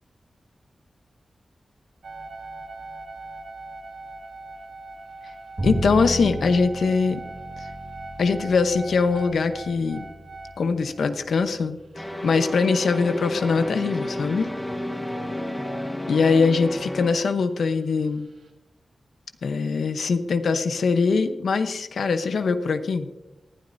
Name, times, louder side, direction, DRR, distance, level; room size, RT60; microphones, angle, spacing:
sound 1, 2.0-11.4 12.1-12.2 12.4-12.5 14.0-16.8 17.1-18.5, right 2 dB, 80° right, 1.9 m, -42 dB
voice 1, 5.6-7.2 8.2-10.0 10.6-11.8 12.2-14.5 16.1-18.3 19.4-23.1, left 4 dB, 85° left, 9 dB, 0.8 m, -22 dB
Bowed string instrument, 5.6-11.7, right 1 dB, 25° right, 1.7 m, -34 dB
sound 2, 11.9-17.1, left 1 dB, 5° left, 1.0 m, -31 dB
19.0 x 11.5 x 2.7 m, 1.0 s
wide cardioid pair, 145°, 0 cm